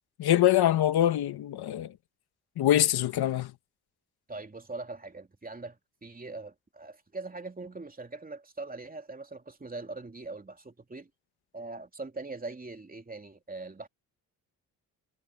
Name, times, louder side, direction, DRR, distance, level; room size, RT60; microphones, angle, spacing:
voice 1, 0.2-2.0 2.6-3.5, left 12 dB, 75° left, 1.6 m, -24 dB
voice 2, 4.3-11.1 11.5-13.9, right 3 dB, 20° right, 3.0 m, -41 dB
cardioid pair, 75°, 38 cm